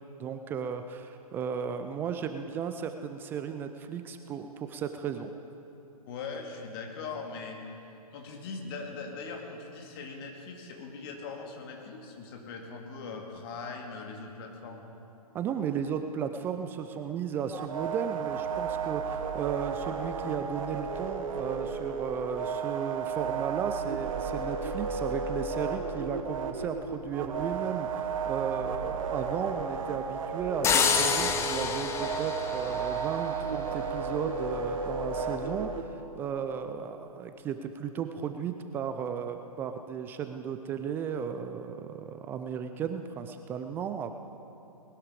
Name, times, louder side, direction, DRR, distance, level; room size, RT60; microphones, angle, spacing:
voice 1, 0.2-5.3 15.3-44.1, right 7 dB, 10° right, 8 dB, 0.3 m, -35 dB
voice 2, 6.1-7.6 8.1-14.9, left 4 dB, 40° left, 2 dB, 2.2 m, -40 dB
sound 1, 17.5-35.8, right 5 dB, 60° right, 1.4 m, -33 dB
sound 2, 30.6-33.5, left 6 dB, 15° left, 0.7 m, -28 dB
20.0 x 12.0 x 5.0 m, 2.9 s
figure-of-eight pair, 130°, 20 cm